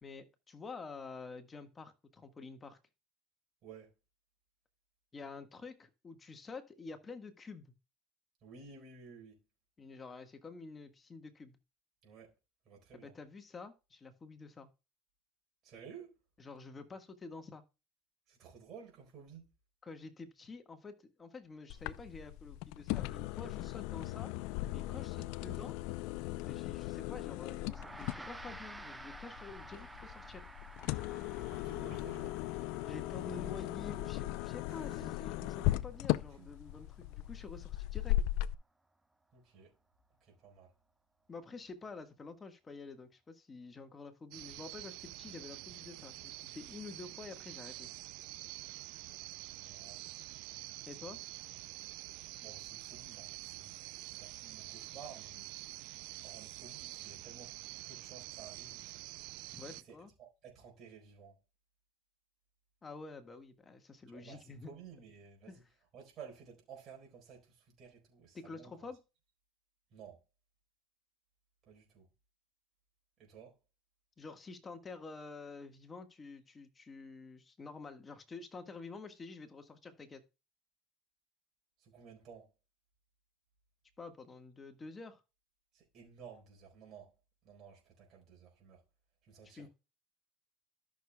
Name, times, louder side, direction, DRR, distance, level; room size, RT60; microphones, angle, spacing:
voice 1, 0.0-2.8 5.1-7.7 9.8-11.6 12.9-14.7 16.4-17.6 19.8-24.3 24.7-25.7 26.4-30.5 32.8-38.2 41.3-47.9 50.9-51.2 59.5-60.1 62.8-64.7 65.5-65.6 68.3-69.0 74.2-80.2 84.0-85.2 89.4-89.7, left 4 dB, 25° left, 1.5 m, -49 dB
voice 2, 8.4-9.4 12.0-12.3 12.6-13.1 15.6-16.1 18.3-19.5 31.3-32.4 34.7-35.1 36.4-36.5 39.3-39.7 40.2-40.7 49.6-50.0 52.4-55.5 56.2-58.9 59.8-61.3 64.1-65.6 65.9-68.9 69.9-70.2 71.7-72.1 73.2-73.5 81.8-82.5 85.7-87.1 87.4-88.8 89.2-89.7, right 6 dB, 50° right, 4.4 m, -54 dB
sound 1, 21.7-38.5, left 16 dB, 70° left, 0.5 m, -38 dB
Gong, 27.6-37.3, right 2 dB, 10° right, 0.7 m, -53 dB
sound 2, 44.3-59.8, right 20 dB, 70° right, 0.4 m, -47 dB
13.5 x 6.6 x 2.3 m
supercardioid pair, 110°, 0 cm